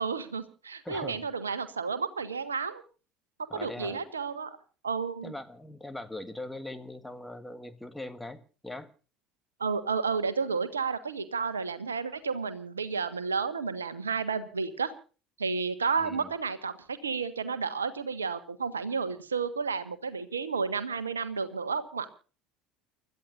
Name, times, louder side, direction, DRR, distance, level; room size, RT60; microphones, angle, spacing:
voice 1, 0.0-2.8 3.5-4.6 4.8-5.3 9.6-14.9 15.4-22.1, right 5 dB, 80° right, 13 dB, 1.4 m, -31 dB
voice 2, 0.8-1.2 3.5-4.1 5.2-8.9 16.0-16.3, left 1 dB, 5° left, 9 dB, 1.8 m, -41 dB
29.5 x 13.5 x 2.5 m, 0.36 s
figure-of-eight pair, 60°, 0 cm